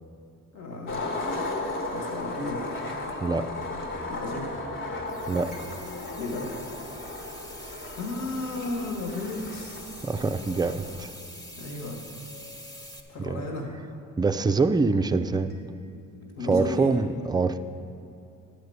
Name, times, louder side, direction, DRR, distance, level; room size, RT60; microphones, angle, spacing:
voice 1, 0.5-1.3 1.9-2.9 4.1-4.5 6.2-6.5 7.5-10.1 11.6-12.0 13.1-13.7 16.4-17.0, left 2 dB, 60° left, 0 dB, 1.7 m, -34 dB
Skateboard, 0.9-11.0, left 2 dB, 40° left, 1.3 m, -35 dB
voice 2, 3.2-3.5 5.3-5.6 7.0-7.1 10.0-11.1 13.2-13.4 14.2-15.5 16.5-17.6, right 4 dB, 15° right, 8 dB, 0.4 m, -25 dB
sound 1, 5.1-13.0, equal, 10° left, 1.2 m, -45 dB
sound 2, 5.5-11.3 12.3-13.6 15.5-17.1, left 2 dB, 90° left, 2.8 m, -51 dB
11.0 x 5.0 x 8.0 m, 2.7 s
cardioid pair, 90°, 30 cm